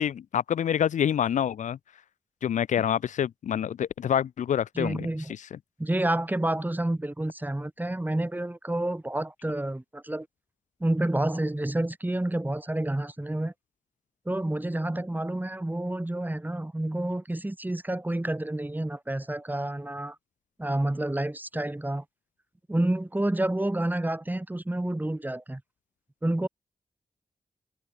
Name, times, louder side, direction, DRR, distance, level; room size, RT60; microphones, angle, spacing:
voice 1, 0.0-1.8 2.4-5.1, left 9 dB, 80° left, 0.4 m, -26 dB
voice 2, 4.8-5.3 5.8-10.3 10.8-13.5 14.3-20.2 20.6-22.0 22.7-25.6 26.2-26.5, right 1 dB, 15° right, 1.1 m, -29 dB
cardioid pair, 50°, 13 cm